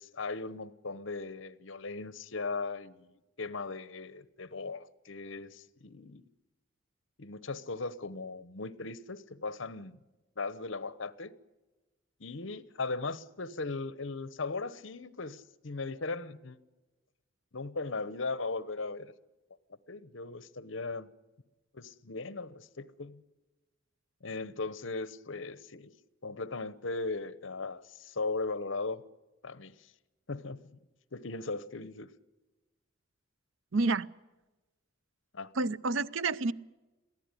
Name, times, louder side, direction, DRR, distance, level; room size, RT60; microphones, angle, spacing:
voice 1, 0.0-6.2 7.2-10.0 10.4-11.3 12.2-16.6 17.5-19.1 19.9-21.1 21.7-23.2 24.2-25.9 26.2-29.0 29.4-29.9 30.3-30.8 31.1-32.1 35.3-35.5, left 3 dB, 65° left, 1.0 m, -38 dB
voice 2, 33.7-34.1 35.6-36.5, right 3 dB, 65° right, 0.7 m, -29 dB
23.0 x 15.0 x 9.9 m
head